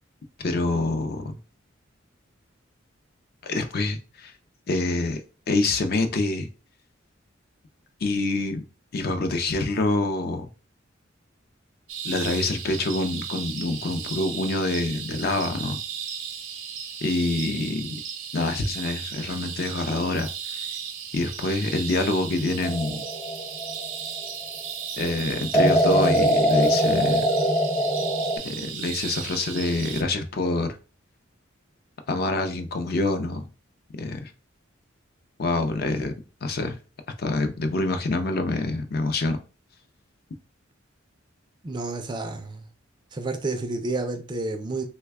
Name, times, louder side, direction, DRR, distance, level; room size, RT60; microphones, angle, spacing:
voice 1, 0.4-1.4 3.4-4.3 4.7-5.2 5.5-6.5 8.0-8.6 8.9-10.5 12.0-15.8 17.0-17.9 18.3-20.6 21.1-23.0 25.0-27.2 28.4-30.8 32.1-33.5 34.0-34.3 35.4-36.1 36.4-36.8 37.2-39.4, left 2 dB, 50° left, 0.5 m, -26 dB
sound 1, 11.9-30.0, right 7 dB, 75° right, 0.6 m, -35 dB
sound 2, 22.6-24.4 25.5-28.4, equal, 20° left, 0.7 m, -22 dB
voice 2, 41.6-42.7 43.1-44.8, right 2 dB, 20° right, 0.3 m, -30 dB
3.2 x 2.2 x 3.4 m
head